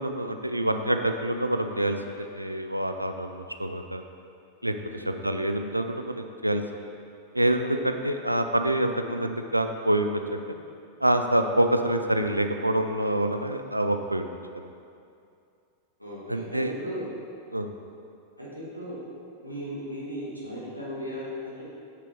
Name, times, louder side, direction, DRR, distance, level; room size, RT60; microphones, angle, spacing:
voice 1, 0.0-4.0 4.6-6.6 7.3-10.6 11.0-14.3 14.5-14.7 16.3-16.7 17.5-17.7, right 1 dB, 85° right, 6 dB, 0.4 m, -26 dB
voice 2, 16.0-17.0 18.4-19.0 19.4-21.6, equal, 90° left, -7 dB, 1.9 m, -36 dB
6.7 x 6.0 x 4.6 m, 2.4 s
figure-of-eight pair, 90°, 0 cm